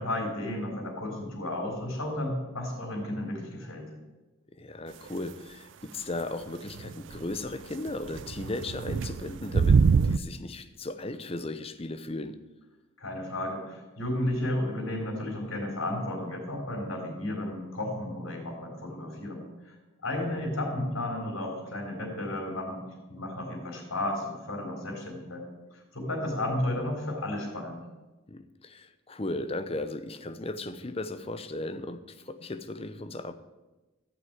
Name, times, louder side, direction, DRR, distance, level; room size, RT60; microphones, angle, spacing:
voice 1, 0.0-3.9 13.0-19.7 20.0-22.8 23.1-25.5 25.7-27.8, left 1 dB, 85° left, 4.0 m, -33 dB
voice 2, 4.5-12.4 28.3-33.3, left 2 dB, 30° left, 0.7 m, -36 dB
sound 1, 6.8-7.2 7.9-10.2, right 5 dB, 65° right, 0.4 m, -24 dB
14.0 x 6.1 x 9.3 m
head